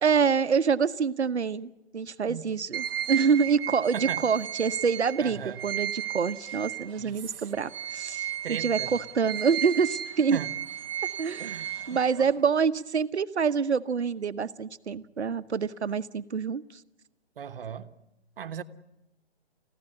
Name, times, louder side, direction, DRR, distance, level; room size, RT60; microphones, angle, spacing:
voice 1, 0.0-10.4 11.2-11.6 11.9-16.6, right 6 dB, 85° right, 1.0 m, -26 dB
sound 1, 2.7-7.1 7.5-12.4, right 10 dB, 20° right, 0.9 m, -34 dB
voice 2, 5.2-5.6 7.0-7.4 8.4-8.9 10.3-10.5 11.4-12.0 17.4-17.9 18.4-18.6, right 8 dB, 55° right, 1.2 m, -37 dB
24.0 x 15.0 x 9.7 m
hypercardioid pair, 145°, 33 cm